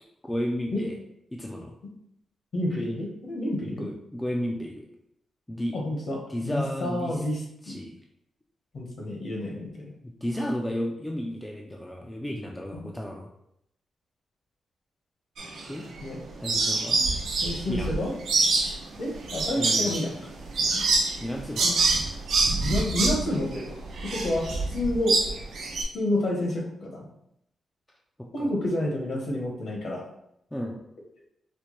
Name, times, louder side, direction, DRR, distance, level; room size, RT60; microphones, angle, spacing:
voice 1, 0.2-0.9 1.3-1.7 3.7-4.9 5.5-5.8 6.3-7.2 7.6-7.9 10.0-13.3 15.7-15.9 16.4-17.0 17.7-18.0 19.6-20.0 21.2-21.8 28.2-28.5 30.5-30.8, equal, 10° left, 0 dB, 0.3 m, -33 dB
voice 2, 2.5-3.9 5.7-7.8 8.7-9.9 12.7-12.9 16.0-16.2 17.4-18.1 19.0-20.1 20.6-20.8 21.6-21.8 22.6-25.2 25.9-27.1 28.3-30.0, left 1 dB, 55° left, -1 dB, 0.9 m, -29 dB
sound 1, 15.4-16.1 16.4-25.8, right 3 dB, 85° right, 0.7 m, -26 dB
4.3 x 2.1 x 3.0 m, 0.76 s
wide cardioid pair, 160°, 0 cm